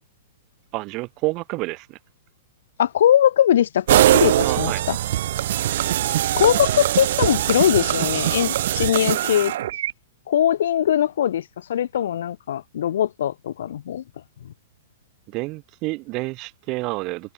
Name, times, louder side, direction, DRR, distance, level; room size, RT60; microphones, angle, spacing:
voice 1, 0.7-2.0 4.4-4.8 15.3-17.3, right 23 dB, 40° right, 6.5 m, -29 dB
voice 2, 2.8-5.0 6.4-9.6 10.3-14.0 14.4-14.5, left 10 dB, 65° left, 2.2 m, -21 dB
sound 1, 3.9-9.9, right 13 dB, 60° right, 0.8 m, -21 dB
hypercardioid pair, 120°, 0 cm